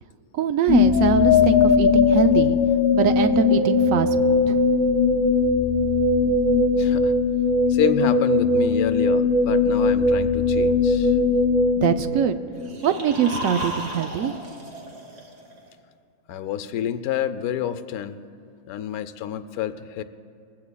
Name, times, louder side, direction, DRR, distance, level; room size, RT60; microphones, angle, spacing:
voice 1, 0.3-2.6 2.9-4.6 11.8-12.4 12.8-14.3, right 7 dB, 70° right, 9 dB, 1.0 m, -23 dB
sound 1, 0.7-12.7, left 4 dB, 55° left, 0.6 m, -19 dB
voice 2, 6.8-7.1 7.7-11.2 16.3-18.2 18.6-20.0, left 10 dB, 90° left, 11 dB, 1.1 m, -28 dB
sound 2, 12.5-15.7, equal, 55° right, 1.9 m, -34 dB
21.0 x 15.5 x 2.3 m, 2.5 s
omnidirectional pair, 1.5 m